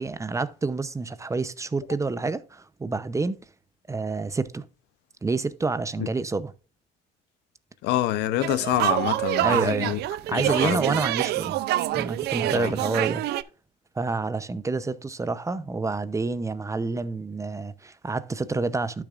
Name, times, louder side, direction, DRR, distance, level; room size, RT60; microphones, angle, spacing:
voice 1, 0.0-3.4 3.9-4.6 5.2-6.5 9.4-10.0 10.3-11.6 11.9-13.2 14.0-19.0, right 3 dB, 20° right, 0.7 m, -28 dB
voice 2, 7.8-10.0 10.3-10.8 12.4-12.7, left 14 dB, 85° left, 0.8 m, -26 dB
sound 1, 8.4-13.4, right 15 dB, 75° right, 0.5 m, -26 dB
12.0 x 6.7 x 2.5 m
cardioid pair, 110°, 17 cm